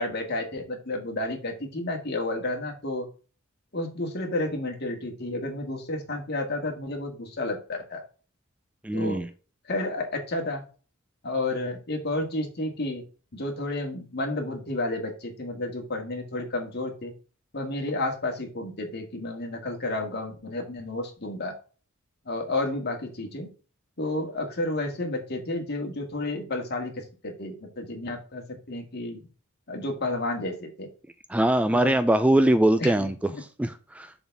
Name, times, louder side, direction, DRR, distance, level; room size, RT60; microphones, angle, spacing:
voice 1, 0.0-3.1 3.7-8.0 8.9-9.2 9.6-10.6 11.2-13.0 13.3-17.1 17.5-21.5 22.3-23.5 24.0-29.3 29.7-30.9 31.7-32.0 32.8-33.1, left 2 dB, 50° left, 3 dB, 2.0 m, -31 dB
voice 2, 8.8-9.3 31.3-34.1, right 1 dB, 5° right, 11 dB, 0.3 m, -22 dB
7.1 x 4.1 x 5.9 m, 0.36 s
head